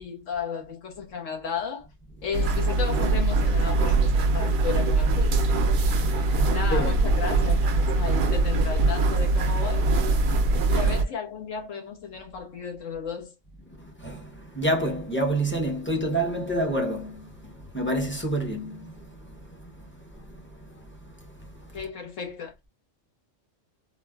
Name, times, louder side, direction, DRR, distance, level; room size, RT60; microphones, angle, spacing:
voice 1, 0.0-1.9 2.2-5.5 6.4-9.9 10.7-13.3 21.7-22.7, left 6 dB, 80° left, 1.3 m, -34 dB
sound 1, 2.3-11.0, right 2 dB, 60° right, 0.6 m, -22 dB
voice 2, 5.7-6.9 10.2-10.7 13.8-21.8, right 1 dB, 15° left, 0.6 m, -30 dB
3.7 x 2.1 x 2.2 m
omnidirectional pair, 1.3 m